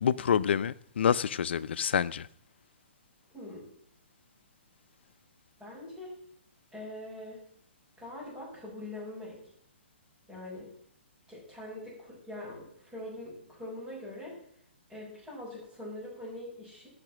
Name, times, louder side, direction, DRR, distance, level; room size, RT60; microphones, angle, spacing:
voice 1, 0.0-2.3, left 8 dB, 70° left, 0.6 m, -27 dB
voice 2, 3.3-3.7 5.6-6.2 6.7-7.4 8.0-9.4 10.3-10.7 11.3-14.4 14.9-16.9, left 1 dB, 10° right, 5.7 m, -43 dB
16.0 x 5.9 x 6.3 m
hypercardioid pair, 155°, 6 cm